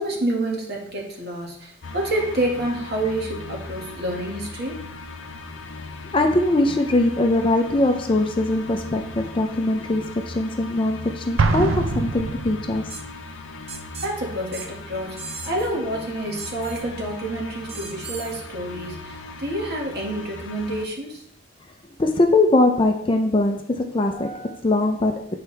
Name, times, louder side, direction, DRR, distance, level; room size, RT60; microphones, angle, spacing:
voice 1, 0.0-4.8 14.0-15.2 15.4-21.2, right 1 dB, 55° right, -2 dB, 1.8 m, -28 dB
sound 1, 1.8-20.9, left 3 dB, 70° left, 0.6 m, -38 dB
voice 2, 6.1-13.0 22.0-25.3, left 2 dB, 25° left, 5 dB, 0.5 m, -21 dB
Explosion, 11.4-13.1, right 3 dB, 80° right, 0.5 m, -23 dB
sound 2, 12.9-13.0 13.7-14.1 14.5-14.7 15.2-15.7 16.4-16.8 17.7-18.3, right 5 dB, 30° right, 0.7 m, -37 dB
8.0 x 4.7 x 3.3 m, 0.68 s
head